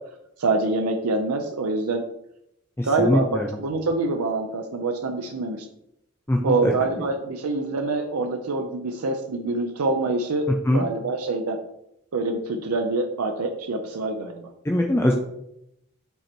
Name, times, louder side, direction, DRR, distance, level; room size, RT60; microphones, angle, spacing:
voice 1, 0.4-2.1 2.8-5.7 6.4-10.5 10.7-11.6 12.1-14.5, right 3 dB, 85° right, 4 dB, 0.6 m, -25 dB
voice 2, 2.8-3.5 6.3-6.7 10.7-10.8 14.7-15.1, left 1 dB, 10° left, 1 dB, 0.5 m, -22 dB
5.4 x 4.3 x 4.4 m, 0.81 s
head